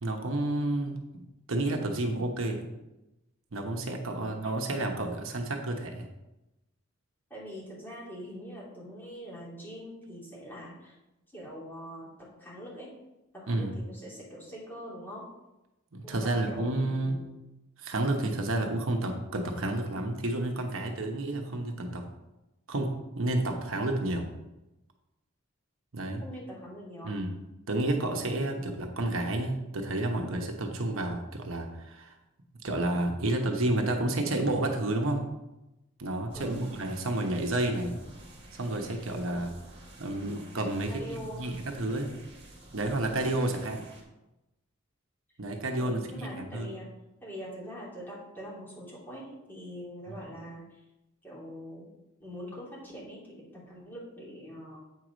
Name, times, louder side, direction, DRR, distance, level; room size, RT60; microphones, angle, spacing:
voice 1, 0.0-1.2 1.5-2.7 3.5-6.1 13.5-13.7 15.9-17.2 17.8-22.1 22.7-24.3 25.9-26.2 27.0-27.3 27.7-32.2 32.6-35.3 36.0-37.9 38.5-39.5 40.0-42.1 42.7-43.8 45.4-46.7 50.1-50.2, right 2 dB, 75° right, 3 dB, 1.0 m, -30 dB
voice 2, 7.3-10.9 11.3-12.9 13.3-15.2 16.0-17.2 26.2-27.1 36.3-36.6 39.3-39.5 40.9-41.5 45.8-46.9 47.2-50.8 51.2-51.9 52.2-54.8, equal, 10° left, -7 dB, 2.9 m, -43 dB
sound 1, 36.3-44.0, right 1 dB, 30° right, 2.2 m, -51 dB
8.4 x 4.7 x 5.1 m, 0.97 s
head